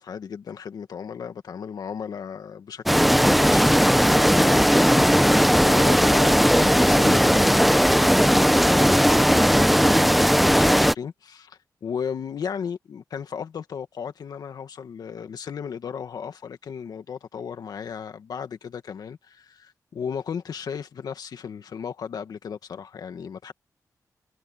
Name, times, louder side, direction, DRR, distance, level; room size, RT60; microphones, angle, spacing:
voice 1, 0.0-23.5, left 7 dB, 90° left, 1.9 m, -35 dB
sound 1, 2.9-10.9, equal, ahead, 1.0 m, -17 dB
cardioid pair, 80°, 7 cm